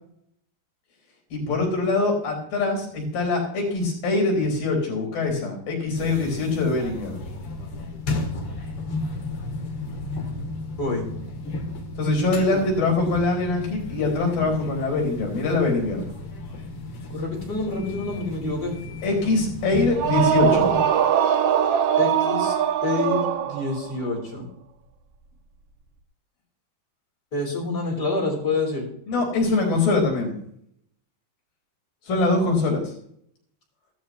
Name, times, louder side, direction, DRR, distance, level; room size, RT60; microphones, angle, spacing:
voice 1, 1.3-7.2 12.0-16.1 19.0-20.8 29.1-30.4 32.0-32.9, left 3 dB, 75° left, 1 dB, 6.2 m, -23 dB
sound 1, 6.0-20.8, left 2 dB, 50° left, 2.2 m, -34 dB
voice 2, 10.8-11.1 12.5-12.6 17.1-18.8 22.0-22.6 22.8-24.5 27.3-28.9, left 3 dB, 30° left, -1 dB, 4.3 m, -27 dB
sound 2, 19.9-23.9, right 8 dB, 70° right, 1.5 m, -21 dB
15.5 x 14.0 x 3.1 m, 0.68 s
omnidirectional pair, 4.0 m